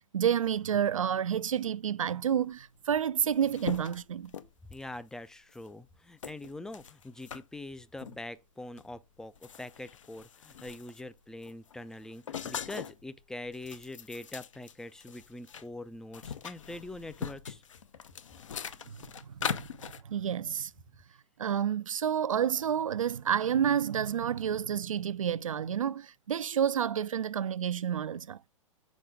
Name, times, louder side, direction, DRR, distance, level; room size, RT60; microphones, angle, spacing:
voice 1, 0.1-4.3 18.9-19.0 19.3-19.7 20.0-20.7 21.4-28.4, right 9 dB, 75° right, 0.4 m, -29 dB
sound 1, 2.7-2.8 3.0-5.0 5.5-5.7 6.2-7.4 8.0-8.2 8.8-8.9 9.2-11.1 11.4-13.0 13.4-15.6 15.9-20.0, left 7 dB, 70° left, 0.8 m, -41 dB
voice 2, 4.7-17.6, left 2 dB, 5° left, 0.3 m, -44 dB
7.1 x 4.8 x 3.5 m
figure-of-eight pair, 105°, 17 cm